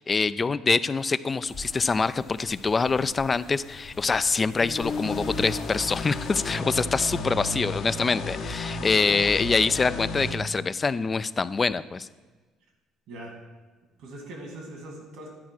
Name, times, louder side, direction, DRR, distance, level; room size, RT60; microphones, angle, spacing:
voice 1, 0.0-12.1, left 4 dB, 30° left, 15 dB, 0.3 m, -25 dB
sound 1, 1.5-6.6, left 4 dB, 50° left, 0.8 m, -39 dB
sound 2, 4.8-10.3, left 2 dB, 70° left, 1.2 m, -33 dB
voice 2, 8.7-9.1 13.1-13.4 14.0-15.3, right 1 dB, 75° right, 1 dB, 2.1 m, -41 dB
10.5 x 4.6 x 6.0 m, 1.3 s
supercardioid pair, 75°, 0 cm